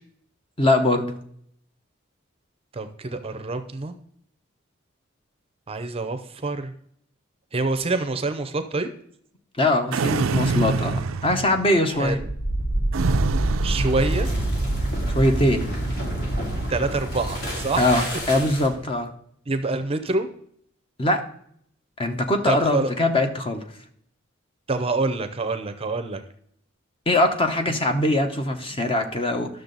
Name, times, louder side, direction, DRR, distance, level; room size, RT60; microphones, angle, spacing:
voice 1, 0.6-1.1 9.6-12.2 15.1-15.7 17.8-19.1 21.0-21.2 22.0-23.6 27.1-29.5, left 1 dB, 25° left, 6 dB, 0.9 m, -22 dB
voice 2, 2.7-3.9 5.7-6.7 7.5-8.9 12.0-12.3 13.6-14.3 16.7-17.9 19.5-20.3 22.5-22.9 24.7-26.2, right 3 dB, 30° right, 9 dB, 0.6 m, -26 dB
sound 1, 9.9-11.8 12.9-14.7, right 4 dB, 85° right, 0.4 m, -26 dB
sound 2, 12.0-18.8, right 1 dB, 55° left, 2.4 m, -26 dB
11.5 x 6.5 x 4.0 m, 0.66 s
head